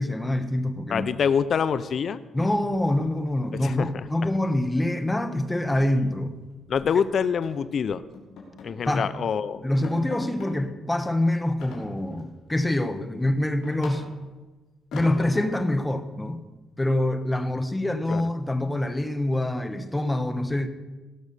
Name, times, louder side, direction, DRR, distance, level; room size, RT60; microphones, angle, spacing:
voice 1, 0.0-1.1 2.3-6.4 8.9-9.1 9.6-14.0 14.9-16.4 16.8-20.7, left 1 dB, 10° left, 10 dB, 1.1 m, -25 dB
voice 2, 0.9-2.2 3.6-3.9 6.7-8.0 8.6-9.6 18.1-18.2, left 7 dB, 55° left, 14 dB, 0.5 m, -25 dB
sound 1, 2.7-3.5 3.8-4.0 4.3-4.5 4.8-4.9 5.3-6.9 7.4-7.7 8.1-9.1 9.4-9.5 9.8-10.6 11.6-12.3 12.8-14.4 14.9-15.7, left 3 dB, 75° left, 3.5 m, -42 dB
17.5 x 6.3 x 6.8 m, 1.2 s
cardioid pair, 90°, 0 cm